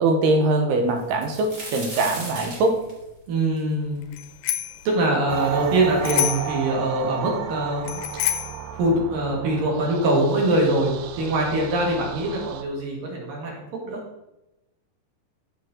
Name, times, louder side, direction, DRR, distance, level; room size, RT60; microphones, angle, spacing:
voice 1, 0.0-2.8, right 2 dB, 70° right, 4 dB, 2.9 m, -22 dB
sound 1, 1.0-4.8 5.3-5.4 6.1-6.2 6.5-7.2 8.1-8.2 8.5-8.7, right 2 dB, 25° right, 3.4 m, -37 dB
voice 2, 3.3-4.0 4.9-8.0 8.7-14.0, right 1 dB, 55° right, -2 dB, 3.7 m, -23 dB
Bicycle bell, 4.1-4.8 6.0-6.6 7.9-8.6, left 12 dB, 85° left, 3.0 m, -27 dB
sound 2, 5.3-12.6, right 8 dB, 85° right, 3.1 m, -33 dB
15.0 x 5.7 x 3.8 m, 0.95 s
omnidirectional pair, 5.3 m